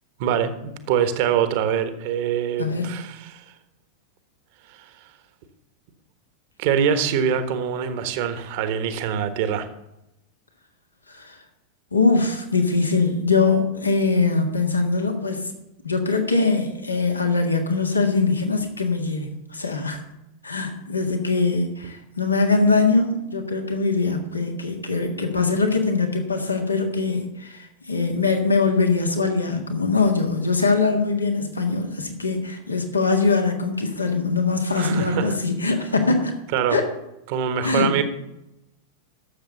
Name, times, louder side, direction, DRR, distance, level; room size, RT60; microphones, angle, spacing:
voice 1, 0.2-3.5 4.7-5.1 6.6-9.7 34.8-35.4 36.5-36.8 37.3-38.0, right 8 dB, 50° right, 10 dB, 1.3 m, -24 dB
voice 2, 2.6-2.9 11.1-11.4 11.9-15.5 15.8-20.0 20.4-36.3 36.7-36.9 37.6-37.9, left 4 dB, 80° left, 4 dB, 1.7 m, -22 dB
11.5 x 7.3 x 6.9 m, 0.89 s
figure-of-eight pair, 90°, 0 cm